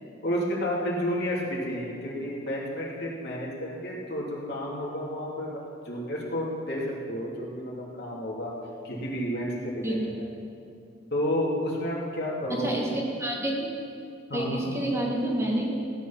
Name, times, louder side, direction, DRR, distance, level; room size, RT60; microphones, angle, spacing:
voice 1, 0.2-8.5 8.8-10.3 11.1-12.9 14.3-14.7, equal, 60° left, -4 dB, 2.9 m, -31 dB
voice 2, 12.5-13.7 14.3-15.7, right 1 dB, 15° right, -2 dB, 1.7 m, -28 dB
16.0 x 9.9 x 5.8 m, 2.4 s
head